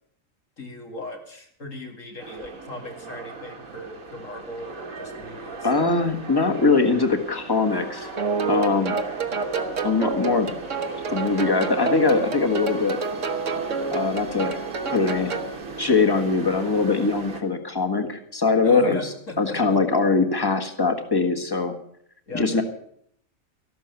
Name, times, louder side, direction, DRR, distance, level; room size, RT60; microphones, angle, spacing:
voice 1, 0.6-5.7 18.6-19.8 22.3-22.6, left 1 dB, 70° left, 2 dB, 2.9 m, -38 dB
sound 1, 2.2-17.4, right 3 dB, 85° right, 2.4 m, -37 dB
voice 2, 5.6-8.1 8.5-9.0 9.8-10.5 11.1-13.0 13.9-14.6 14.9-15.4 15.8-19.0 19.4-21.7 22.3-22.6, left 4 dB, 20° left, 4 dB, 1.5 m, -22 dB
sound 2, 8.2-15.5, right 4 dB, 65° right, 1.5 m, -29 dB
14.0 x 12.0 x 7.0 m, 0.67 s
omnidirectional pair, 1.4 m